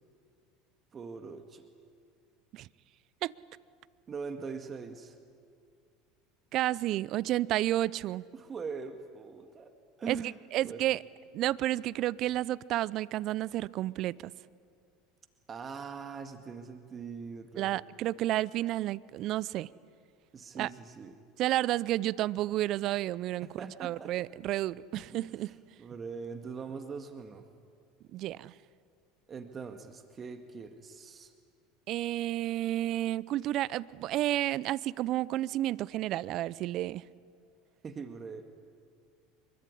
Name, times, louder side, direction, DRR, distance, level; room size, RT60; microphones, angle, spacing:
voice 1, 0.9-1.7 4.1-5.2 8.3-9.7 10.0-10.9 15.5-17.8 20.3-21.2 23.4-24.1 25.1-25.2 25.8-27.5 29.3-31.3 37.8-38.5, right 5 dB, 30° right, 7 dB, 2.0 m, -42 dB
voice 2, 6.5-8.2 10.1-11.0 11.3-14.3 17.6-19.7 20.5-20.7 21.4-23.5 23.8-25.5 28.1-28.5 31.9-37.0, right 14 dB, 55° right, 21 dB, 0.6 m, -31 dB
25.0 x 23.0 x 9.9 m, 2.3 s
hypercardioid pair, 80°, 0 cm